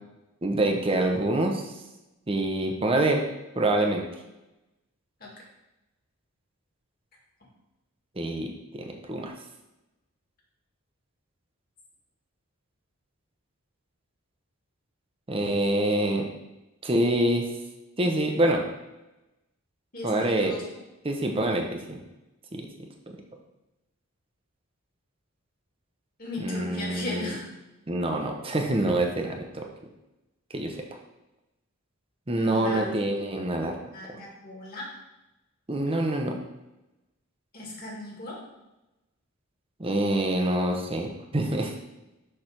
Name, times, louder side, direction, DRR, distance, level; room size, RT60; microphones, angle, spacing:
voice 1, 0.4-1.6 2.3-3.2 3.5-4.0 8.2-9.3 15.3-16.2 16.8-17.5 18.0-18.6 20.0-20.5 21.0-22.0 22.5-22.7 23.1-23.2 26.4-27.3 27.9-29.6 30.5-30.8 32.3-33.8 34.1-34.2 35.7-36.3 39.8-41.7, right 1 dB, 25° right, 2 dB, 0.7 m, -26 dB
voice 2, 19.9-20.6 26.2-27.5 32.4-33.5 33.9-34.9 37.5-38.4, left 2 dB, 40° left, -3 dB, 1.9 m, -37 dB
6.5 x 3.3 x 5.8 m, 0.98 s
head